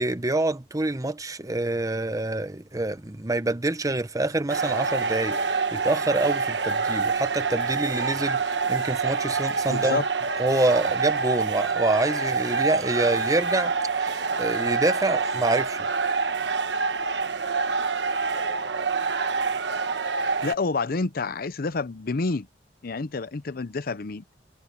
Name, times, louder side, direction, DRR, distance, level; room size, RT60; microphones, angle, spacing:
voice 1, 0.0-10.0 10.4-13.7 14.0-15.8, right 2 dB, 20° right, 0.9 m, -26 dB
Prison ambience, 4.5-20.5, right 4 dB, 75° right, 1.2 m, -26 dB
voice 2, 9.7-10.0 20.4-22.5 22.8-24.2, left 3 dB, 55° left, 0.7 m, -28 dB
head